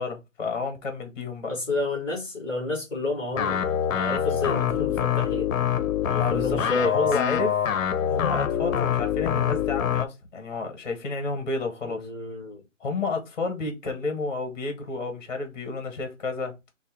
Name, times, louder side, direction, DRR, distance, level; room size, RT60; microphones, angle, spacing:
voice 1, 0.0-1.5 6.1-7.5 8.1-12.0 12.8-16.5, left 3 dB, 35° left, 0.9 m, -30 dB
voice 2, 1.5-5.5 6.1-7.1 11.8-12.6, left 2 dB, 5° left, 0.9 m, -30 dB
sound 1, 3.3-10.0, left 9 dB, 80° left, 0.6 m, -25 dB
3.4 x 2.1 x 4.3 m
hypercardioid pair, 175°, 40 cm